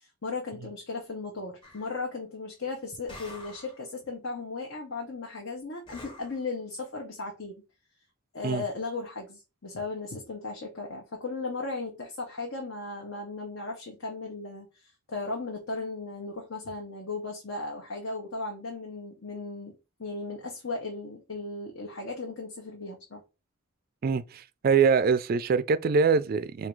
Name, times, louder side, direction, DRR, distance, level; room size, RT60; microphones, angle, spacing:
voice 1, 0.0-7.6 8.3-19.7 20.0-23.2, left 3 dB, 75° left, 1.1 m, -36 dB
sound 1, 1.6-2.0 3.1-3.8 5.9-6.4, left 2 dB, 25° left, 1.0 m, -47 dB
voice 2, 24.0-26.7, right 5 dB, 45° right, 0.3 m, -24 dB
3.7 x 2.7 x 4.7 m
head